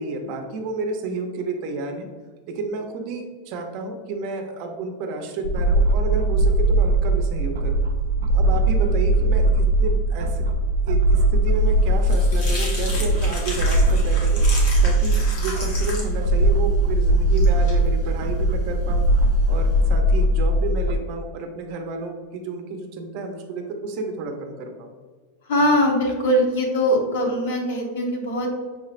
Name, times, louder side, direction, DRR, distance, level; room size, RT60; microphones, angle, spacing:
voice 1, 0.0-2.1 2.5-7.8 8.3-10.4 10.9-19.1 19.5-24.9, right 3 dB, 40° right, 4 dB, 0.5 m, -31 dB
sound 1, 5.4-21.0, right 1 dB, 85° right, 0.4 m, -20 dB
sound 2, 11.5-19.8, left 1 dB, 45° left, 1.1 m, -35 dB
voice 2, 25.5-28.5, equal, 65° left, 2 dB, 1.0 m, -21 dB
6.3 x 3.1 x 2.4 m, 1.5 s
supercardioid pair, 175°, 0 cm